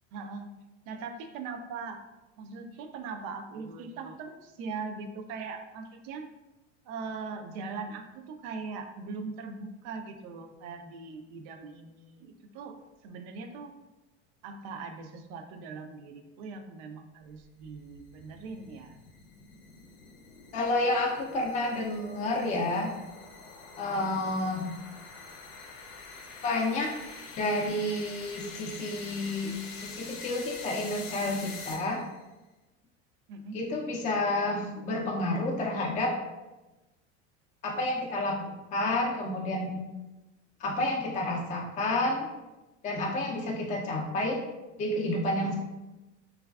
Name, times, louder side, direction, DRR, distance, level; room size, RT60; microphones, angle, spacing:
voice 1, 0.1-0.6 0.9-2.0 2.4-6.3 6.9-13.7 14.4-19.0 33.3-33.6 35.2-35.5 35.8-35.9, right 4 dB, 55° right, 5 dB, 0.4 m, -40 dB
sound 1, 17.4-32.2, left 4 dB, 80° left, 0.6 m, -46 dB
voice 2, 20.5-22.9 23.8-24.7 26.4-26.9 27.4-29.6 29.8-32.0 33.5-36.2 37.6-39.8 40.6-42.3 42.8-44.4 44.8-45.6, left 2 dB, 20° left, -1 dB, 0.4 m, -30 dB
3.1 x 2.3 x 2.3 m, 1.1 s
hypercardioid pair, 95°, 35 cm